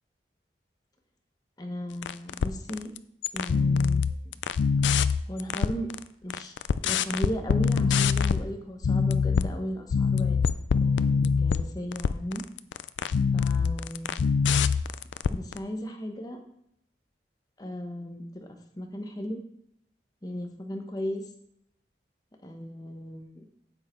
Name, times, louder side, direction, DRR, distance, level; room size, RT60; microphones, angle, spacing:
voice 1, 1.6-2.9 3.3-4.4 5.3-5.9 6.2-10.4 10.8-12.4 13.3-14.2 15.3-16.4 17.6-18.5 18.8-19.4 20.2-21.2 22.4-23.5, equal, 20° left, 4 dB, 1.0 m, -36 dB
sound 1, 2.0-3.0 3.2-6.0 6.3-8.5 8.8-9.5 9.9-15.6, left 5 dB, 80° left, 0.4 m, -24 dB
8.9 x 7.5 x 4.5 m, 0.76 s
head